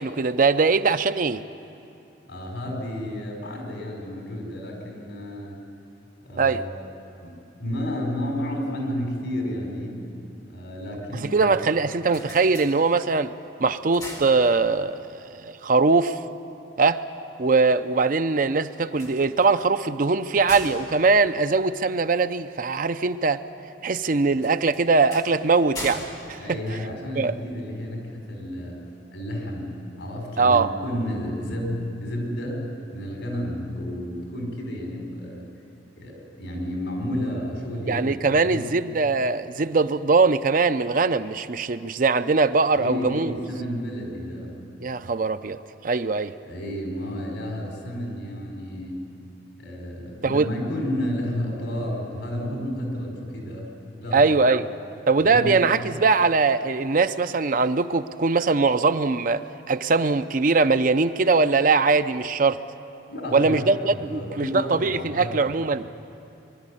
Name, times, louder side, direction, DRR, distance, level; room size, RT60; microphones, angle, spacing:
voice 1, 0.0-1.4 6.4-6.6 11.3-13.3 13.6-16.2 16.8-17.0 17.4-23.4 23.8-26.0 26.3-26.6 27.2-27.3 30.4-30.7 37.9-43.4 44.8-46.3 50.2-50.5 54.1-54.7 55.1-59.4 59.7-62.6 63.3-65.9, right 4 dB, 45° right, 11 dB, 0.5 m, -21 dB
voice 2, 2.3-5.6 6.2-6.8 7.2-10.1 10.5-11.5 26.4-28.8 29.1-29.7 30.0-35.4 36.0-38.7 42.7-44.6 46.4-49.0 49.6-54.4 55.2-55.6 63.1-65.4, equal, 85° left, 0 dB, 5.1 m, -31 dB
sound 1, 12.0-13.3 13.7-15.0 18.8-22.3 24.4-27.4, left 1 dB, 20° left, 3.3 m, -41 dB
23.5 x 12.0 x 9.9 m, 2.6 s
head